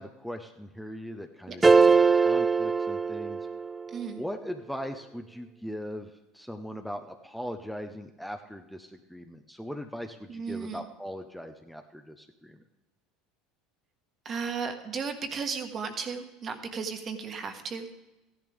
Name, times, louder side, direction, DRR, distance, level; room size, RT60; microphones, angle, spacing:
voice 1, 0.0-3.5 4.2-12.6, equal, ahead, 5 dB, 0.9 m, -40 dB
sound 1, 1.6-3.9, right 4 dB, 15° right, 0.4 m, -21 dB
voice 2, 3.9-4.2 10.3-10.8 14.2-17.9, right 5 dB, 40° right, 6 dB, 1.6 m, -35 dB
15.0 x 11.0 x 3.5 m, 1.0 s
hypercardioid pair, 80°, 0 cm